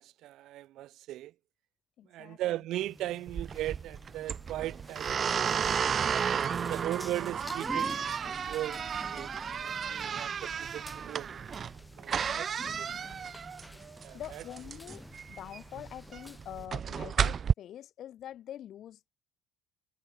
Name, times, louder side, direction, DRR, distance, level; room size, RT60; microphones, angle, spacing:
voice 1, 0.0-1.3 2.1-5.6 6.7-9.3 9.6-11.6 12.0-13.0 14.0-14.4, right 14 dB, 55° right, 2.1 m, -38 dB
voice 2, 2.0-2.4 12.3-13.2 14.1-19.1, left 11 dB, 45° left, 6.7 m, -45 dB
sound 1, 2.8-16.7, left 1 dB, 5° left, 3.9 m, -49 dB
sound 2, 3.3-17.5, right 7 dB, 30° right, 0.9 m, -33 dB
cardioid pair, 150°, 0 cm